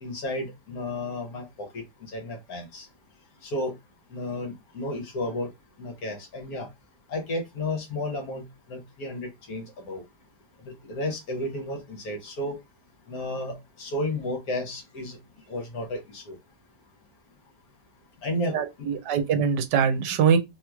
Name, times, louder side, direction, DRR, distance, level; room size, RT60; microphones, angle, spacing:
voice 1, 0.0-2.9 3.4-3.7 4.1-5.5 5.8-6.7 7.1-10.0 10.6-12.6 13.1-15.2 15.5-16.4 18.2-18.5, left 1 dB, 60° left, 1.3 m, -32 dB
voice 2, 18.5-20.4, right 7 dB, 80° right, 1.2 m, -23 dB
3.1 x 2.9 x 2.3 m
omnidirectional pair, 1.9 m